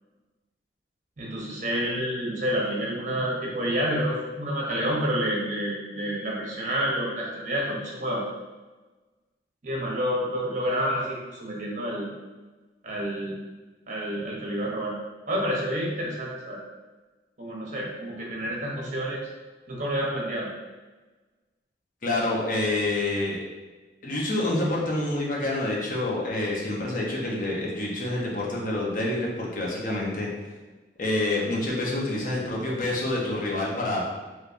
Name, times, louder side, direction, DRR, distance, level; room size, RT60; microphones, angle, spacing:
voice 1, 1.2-8.2 9.6-12.1 12.8-13.4 13.9-14.9 15.3-16.6 17.4-19.2 19.7-20.5, equal, 45° right, -3 dB, 0.8 m, -29 dB
voice 2, 22.0-23.4 24.0-30.3 31.0-34.1, left 2 dB, 50° left, -4 dB, 0.8 m, -27 dB
3.4 x 3.2 x 2.5 m, 1.2 s
head